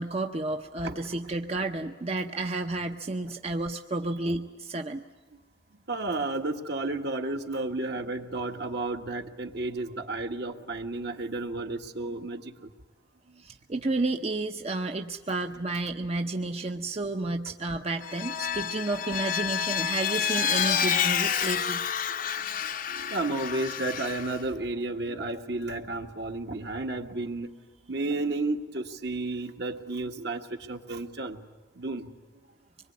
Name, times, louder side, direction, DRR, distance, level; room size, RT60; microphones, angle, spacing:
voice 1, 0.0-5.0 13.4-21.9, right 2 dB, 35° right, 5 dB, 0.8 m, -31 dB
voice 2, 5.9-12.7 13.3-13.4 18.5-18.6 22.6-27.5 27.9-31.4 31.8-32.1, right 2 dB, 60° right, 4 dB, 1.8 m, -32 dB
Vehicle, 18.0-24.4, left 8 dB, 50° left, 0.7 m, -29 dB
25.0 x 22.0 x 9.5 m, 1.3 s
head